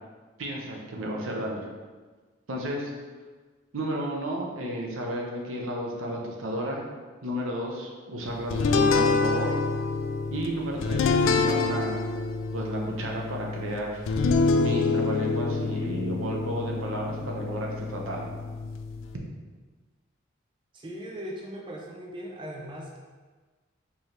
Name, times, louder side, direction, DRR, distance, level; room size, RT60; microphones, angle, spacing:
voice 1, 0.4-1.6 2.5-2.9 3.7-6.8 7.2-9.6 10.3-12.0 12.5-14.0 14.6-18.3, right 1 dB, 90° right, -1 dB, 0.8 m, -32 dB
sound 1, 8.5-19.1, left 4 dB, 75° left, 0.3 m, -27 dB
voice 2, 20.7-23.0, equal, 25° right, -2 dB, 0.4 m, -39 dB
4.6 x 2.8 x 3.2 m, 1.4 s
head